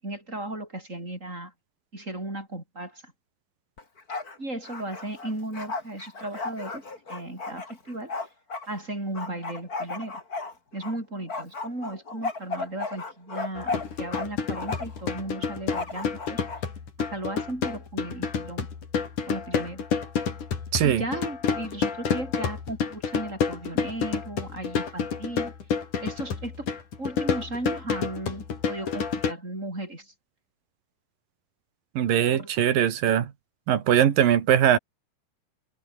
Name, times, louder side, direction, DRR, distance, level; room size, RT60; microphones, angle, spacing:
voice 1, 0.0-1.5 1.9-3.1 4.4-8.1 8.7-10.2 10.7-16.4 17.0-18.7 19.3-19.9 20.8-25.5 26.0-26.7 27.0-30.1 32.3-32.5, right 1 dB, 20° right, 8.3 m, -36 dB
Bark, 3.8-4.4 4.6-8.7 9.1-10.9 11.3-14.3 14.5-15.0 15.7-16.6, left 3 dB, 25° left, 3.8 m, -34 dB
sound 1, 13.6-29.3, left 6 dB, 65° left, 5.1 m, -29 dB
voice 2, 20.7-21.0 32.0-33.3 33.7-34.8, right 10 dB, 90° right, 3.8 m, -21 dB
omnidirectional pair, 3.9 m